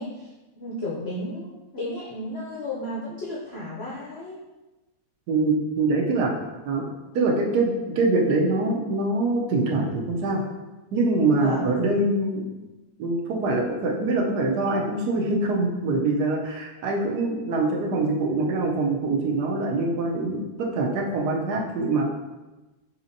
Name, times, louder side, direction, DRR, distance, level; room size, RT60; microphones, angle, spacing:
voice 1, 0.0-4.4 11.3-11.6, left 1 dB, 65° left, -6 dB, 0.6 m, -33 dB
voice 2, 5.3-6.3 6.7-6.8 7.1-10.4 10.9-12.5 13.0-22.0, right 2 dB, 75° right, 0 dB, 1.2 m, -24 dB
5.0 x 2.8 x 2.6 m, 1.1 s
omnidirectional pair, 1.8 m